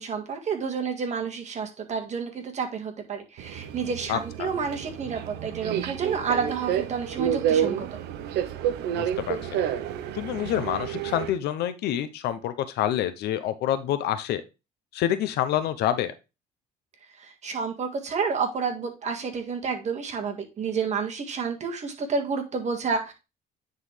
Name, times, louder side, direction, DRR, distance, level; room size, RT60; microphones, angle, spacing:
voice 1, 0.0-8.0 17.2-23.1, right 5 dB, 45° right, 3 dB, 1.7 m, -30 dB
Subway metro underground, 3.4-11.3, right 9 dB, 80° right, 0.8 m, -29 dB
voice 2, 4.1-4.5 8.9-9.6 10.1-14.4 14.9-16.1, left 11 dB, 80° left, 11 dB, 0.8 m, -27 dB
9.6 x 4.1 x 3.2 m, 0.27 s
cardioid pair, 110°, 17 cm